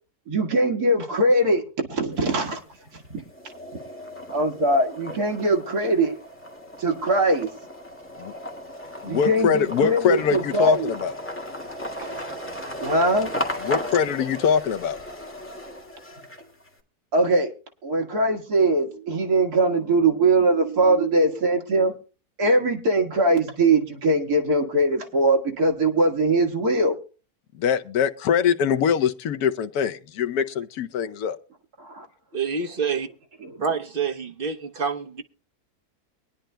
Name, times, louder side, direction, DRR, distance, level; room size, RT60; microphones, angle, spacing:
voice 1, 0.3-1.6 1.9-2.6 2.9-3.2 4.3-6.2 6.8-7.5 9.0-10.9 12.0-12.1 12.8-13.3 17.1-17.5 17.8-21.9 22.4-27.0 31.8-32.1 33.4-33.6, right 2 dB, 75° right, 2.2 m, -21 dB
sound 1, 2.1-2.8 3.2-16.7, equal, 10° left, 1.7 m, -35 dB
voice 2, 9.0-11.1 13.6-15.0 27.5-31.4, left 7 dB, 75° left, 1.2 m, -23 dB
voice 3, 32.3-33.1 33.6-35.2, right 6 dB, 40° right, 1.0 m, -27 dB
23.5 x 10.0 x 2.2 m
omnidirectional pair, 1.6 m